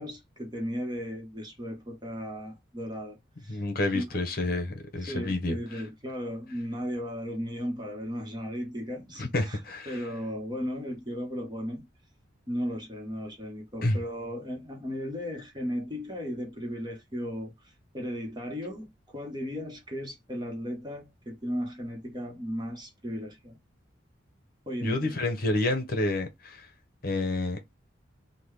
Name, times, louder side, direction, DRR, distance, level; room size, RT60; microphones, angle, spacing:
voice 1, 0.0-3.6 3.9-4.1 5.0-9.6 9.9-11.9 12.5-23.6 24.7-25.3, equal, 20° right, 1.0 m, -36 dB
voice 2, 3.5-5.6 9.2-10.0 13.8-14.0 24.8-26.7 27.0-27.6, left 2 dB, 50° left, 1.0 m, -29 dB
3.7 x 2.3 x 3.3 m
head